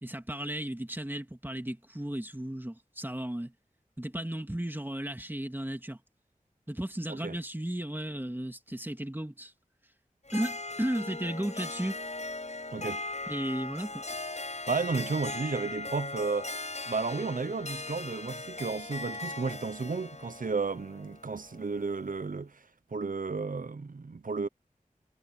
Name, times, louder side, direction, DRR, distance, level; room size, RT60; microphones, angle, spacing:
voice 1, 0.0-3.5 4.0-6.0 6.7-9.5 10.3-12.0 13.3-14.0, right 1 dB, 15° right, 2.5 m, -34 dB
Harp, 10.3-22.1, left 2 dB, 50° left, 8.0 m, -39 dB
voice 2, 12.7-13.0 14.7-16.5 16.9-22.5 22.9-24.5, right 4 dB, 70° right, 0.9 m, -33 dB
wide cardioid pair, 60°, 14 cm